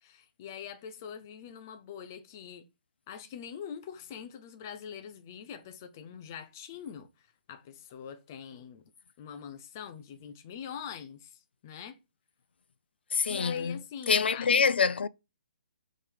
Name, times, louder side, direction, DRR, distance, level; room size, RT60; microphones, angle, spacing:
voice 1, 0.0-2.7 3.1-8.8 9.2-12.0 13.3-14.5, left 8 dB, 15° left, 0.4 m, -44 dB
voice 2, 13.1-15.1, left 5 dB, 90° left, 0.3 m, -26 dB
5.5 x 3.2 x 5.3 m
hypercardioid pair, 180°, 6 cm